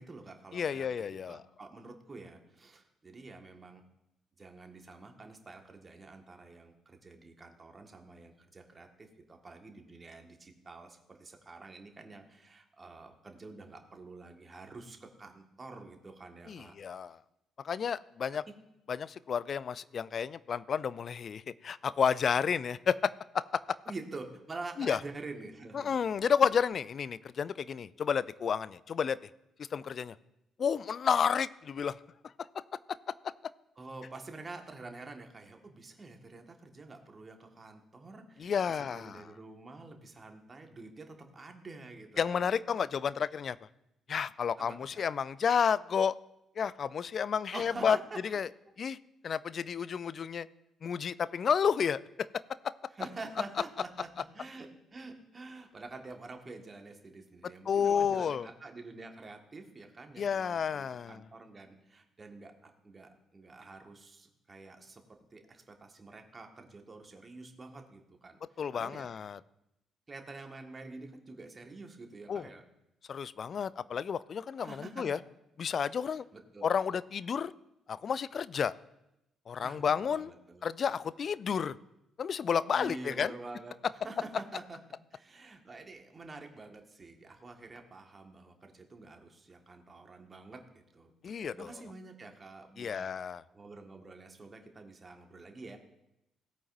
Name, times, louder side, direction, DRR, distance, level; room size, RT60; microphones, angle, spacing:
voice 1, 0.0-0.9 1.3-3.8 4.4-16.7 23.9-26.0 33.8-42.5 44.6-45.0 47.5-48.2 52.9-65.0 65.3-69.1 70.1-72.6 74.6-75.2 76.3-77.0 79.6-80.6 82.7-84.8 85.1-90.6 90.9-93.2 93.5-95.8, right 3 dB, 30° right, 4 dB, 1.7 m, -48 dB
voice 2, 0.5-1.4 16.5-17.2 17.6-18.4 18.9-23.8 24.8-25.0 25.7-29.3 29.6-30.2 30.6-32.0 38.4-39.2 42.2-43.6 44.1-46.1 46.6-48.0 48.3-48.5 48.8-49.0 49.2-50.5 50.8-52.3 57.7-58.5 60.2-61.2 68.6-69.4 72.3-72.5 73.1-75.2 75.6-76.3 76.6-77.5 77.9-78.7 79.5-80.3 80.6-81.8 82.2-83.3 91.2-91.7 92.8-93.4, left 7 dB, 50° left, 18 dB, 0.4 m, -31 dB
17.0 x 8.5 x 2.6 m, 0.87 s
figure-of-eight pair, 45°, 0 cm